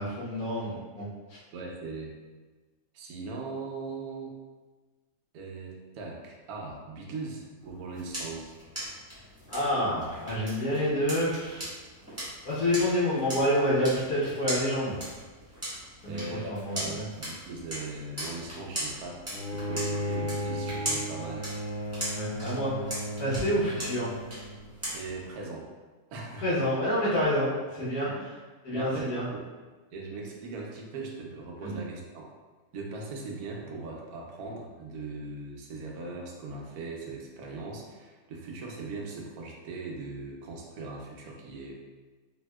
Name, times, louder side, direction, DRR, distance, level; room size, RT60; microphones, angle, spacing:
voice 1, 0.0-1.4 9.5-11.6 12.4-15.0 16.0-17.0 22.1-22.9 23.2-24.1 26.4-28.1 28.6-29.3 31.6-31.8, equal, 80° left, -8 dB, 1.4 m, -28 dB
voice 2, 1.5-2.1 2.9-4.3 5.3-8.5 16.1-19.2 19.5-21.4 24.9-25.6 26.1-26.4 28.0-28.2 28.7-29.4 29.9-32.3 32.7-41.8, right 3 dB, 85° right, 0 dB, 1.1 m, -39 dB
sound 1, 7.6-25.3, equal, 10° right, 1.1 m, -39 dB
Bowed string instrument, 19.3-24.5, equal, 65° left, 1.0 m, -35 dB
3.5 x 2.7 x 2.2 m, 1.3 s
omnidirectional pair, 1.6 m